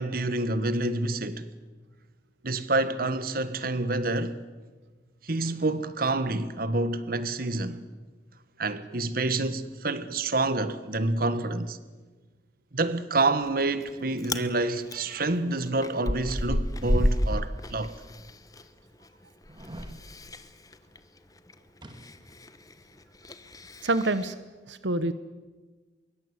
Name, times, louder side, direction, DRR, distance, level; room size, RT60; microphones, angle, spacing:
voice 1, 0.0-1.5 2.4-4.4 5.2-7.8 8.6-11.8 12.7-17.9, right 2 dB, 55° right, 1.4 m, -28 dB
Chewing mastication, 13.4-13.9 14.2-14.5 14.9-18.6 18.9-24.3, equal, 20° left, 1.2 m, -31 dB
sound 1, 17.5-17.6 18.2-18.3 19.4-20.0 21.8-22.5 22.8-22.9, right 1 dB, 25° right, 1.9 m, -45 dB
voice 2, 23.8-24.3 24.7-25.1, right 2 dB, 80° right, 1.1 m, -26 dB
25.0 x 23.0 x 8.1 m
head